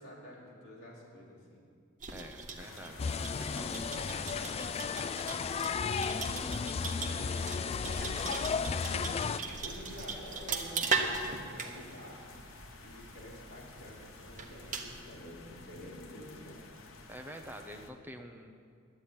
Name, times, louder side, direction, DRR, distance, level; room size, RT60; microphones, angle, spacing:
voice 1, 0.0-1.7 5.8-12.4 12.8-16.6, left 1 dB, 55° left, -7 dB, 4.6 m, -48 dB
sound 1, 2.0-15.0, right 4 dB, 40° right, 1.3 m, -39 dB
voice 2, 2.1-5.5 17.1-18.5, equal, 10° right, 4 dB, 0.8 m, -48 dB
sound 2, 2.6-17.9, left 3 dB, 80° left, 1.1 m, -52 dB
sound 3, 3.0-9.4, left 5 dB, 30° left, 0.3 m, -34 dB
11.0 x 8.7 x 9.9 m, 2.3 s
head